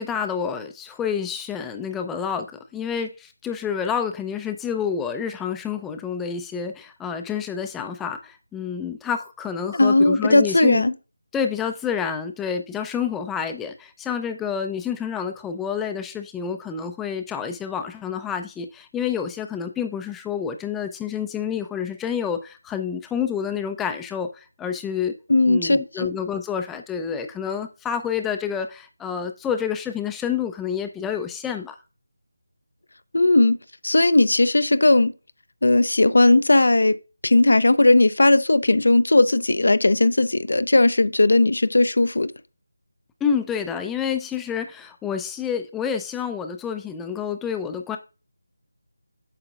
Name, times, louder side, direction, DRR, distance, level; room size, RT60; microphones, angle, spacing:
voice 1, 0.0-10.8 11.3-25.2 25.4-31.8 43.2-48.0, left 7 dB, 5° left, 0.4 m, -28 dB
voice 2, 9.7-10.9 25.3-26.1 33.1-33.6 33.8-35.1 35.6-37.0 37.2-42.3, left 2 dB, 65° left, 0.5 m, -17 dB
8.6 x 6.6 x 2.4 m
figure-of-eight pair, 160°, 0 cm